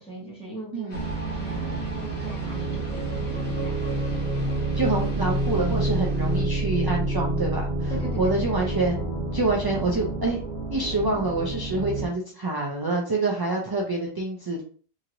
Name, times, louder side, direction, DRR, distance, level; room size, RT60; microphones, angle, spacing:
voice 1, 0.0-3.9 7.9-8.3 8.6-8.8, right 2 dB, 5° left, -4 dB, 0.9 m, -39 dB
sound 1, 0.9-6.4, left 2 dB, 60° left, 1.2 m, -43 dB
sound 2, 0.9-12.1, right 2 dB, 85° right, 1.3 m, -28 dB
voice 2, 4.7-7.9 8.2-10.4 10.7-14.6, right 2 dB, 40° right, -1 dB, 0.3 m, -27 dB
2.8 x 2.8 x 2.5 m, 0.42 s
omnidirectional pair, 1.0 m